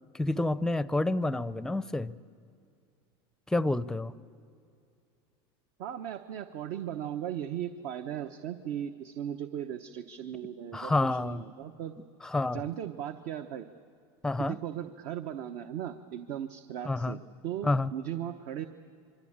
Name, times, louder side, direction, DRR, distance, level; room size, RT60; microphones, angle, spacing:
voice 1, 0.1-2.2 3.5-4.1 10.7-11.4 12.2-12.7 14.2-14.6 16.8-17.2 17.6-17.9, left 2 dB, 5° left, 16 dB, 0.6 m, -29 dB
voice 2, 5.8-12.0 12.5-13.7 14.4-18.7, right 10 dB, 60° right, 8 dB, 1.0 m, -37 dB
27.0 x 23.5 x 8.7 m, 2.4 s
supercardioid pair, 130°, 14 cm